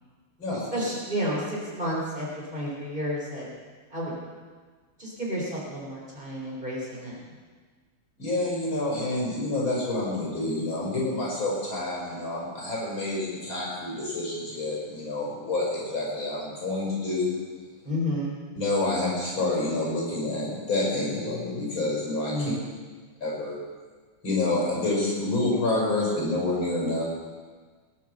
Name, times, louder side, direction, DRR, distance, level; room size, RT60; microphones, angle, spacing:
voice 1, 0.7-3.5 3.9-4.2 5.0-7.2 17.8-18.4 22.3-22.6, equal, 20° right, -5 dB, 3.7 m, -31 dB
voice 2, 8.2-17.3 18.6-22.5 23.2-23.5 24.2-27.0, left 2 dB, 65° left, -4 dB, 6.2 m, -28 dB
20.0 x 7.6 x 6.5 m, 1.5 s
omnidirectional pair, 2.4 m